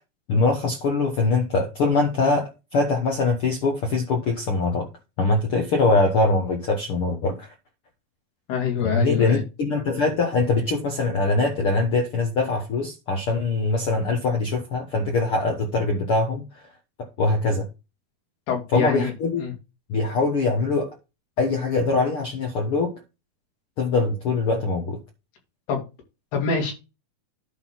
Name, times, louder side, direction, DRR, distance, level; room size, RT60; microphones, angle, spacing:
voice 1, 0.3-4.9 5.2-7.5 8.8-16.6 17.0-17.7 18.7-19.4 19.9-21.0 21.4-22.9 23.8-25.0, left 3 dB, 65° left, 1.3 m, -23 dB
voice 2, 8.5-9.4 18.5-19.1 19.4-19.5 25.7-25.8 26.3-26.7, left 6 dB, 85° left, 4.8 m, -25 dB
11.0 x 3.8 x 5.8 m
omnidirectional pair, 4.5 m